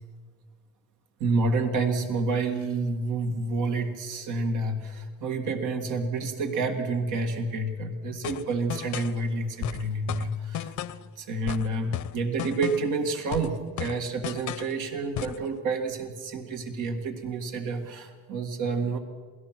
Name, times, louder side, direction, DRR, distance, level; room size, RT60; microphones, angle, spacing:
voice 1, 1.2-10.7 11.2-19.0, right 3 dB, 85° right, 4 dB, 2.2 m, -29 dB
sound 1, 8.2-9.2 9.6-11.1 11.5-13.0 13.3-14.8 15.2-15.5, left 11 dB, 75° left, 0.8 m, -35 dB
27.5 x 18.5 x 6.1 m, 1.5 s
cardioid pair, 90°, 30 cm